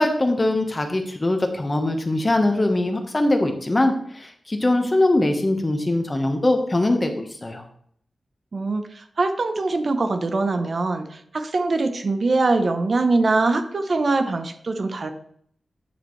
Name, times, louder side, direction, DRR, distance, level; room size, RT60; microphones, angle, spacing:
voice 1, 0.0-7.6, left 1 dB, 25° left, 5 dB, 1.2 m, -22 dB
voice 2, 8.5-15.1, right 3 dB, 50° right, 7 dB, 0.9 m, -23 dB
9.1 x 6.7 x 3.2 m, 0.64 s
wide cardioid pair, 100°, 0 cm